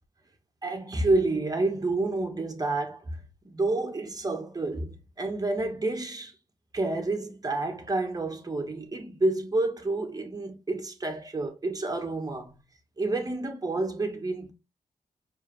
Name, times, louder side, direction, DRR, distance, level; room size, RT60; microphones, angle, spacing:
voice 1, 0.6-3.2 3.4-6.3 6.7-12.5 13.0-14.5, right 2 dB, 30° right, 1.3 m, -29 dB
4.6 x 2.9 x 3.1 m
cardioid pair, 50°, 14 cm